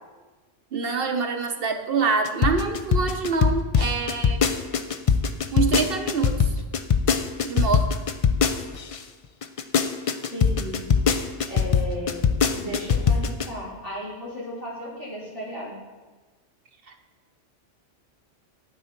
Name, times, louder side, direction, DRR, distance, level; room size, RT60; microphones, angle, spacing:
voice 1, 0.7-4.4 5.5-6.5 7.4-7.9, right 5 dB, 55° right, 6 dB, 0.8 m, -25 dB
sound 1, 2.2-9.0 9.4-13.5, left 6 dB, 60° left, 0.3 m, -21 dB
voice 2, 10.3-10.9 11.5-12.3 12.5-15.8, left 1 dB, 75° left, -8 dB, 4.1 m, -34 dB
9.0 x 9.0 x 4.4 m, 1.3 s
omnidirectional pair, 1.2 m